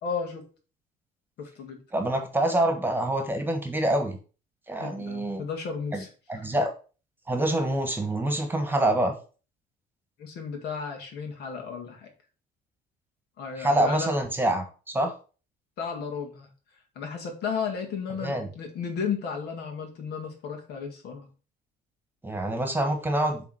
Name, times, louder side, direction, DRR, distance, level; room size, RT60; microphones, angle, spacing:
voice 1, 0.0-0.4 1.4-1.8 4.8-6.4 10.2-12.1 13.4-14.1 15.8-16.5 17.0-21.3, left 6 dB, 70° left, 3 dB, 1.9 m, -34 dB
voice 2, 1.9-4.2 4.7-5.4 5.9-6.0 6.3-6.7 7.3-9.1 13.6-15.1 18.2-18.5 22.2-23.4, right 1 dB, 10° right, 5 dB, 1.4 m, -26 dB
7.1 x 3.5 x 4.8 m, 0.36 s
cardioid pair, 110°, 17 cm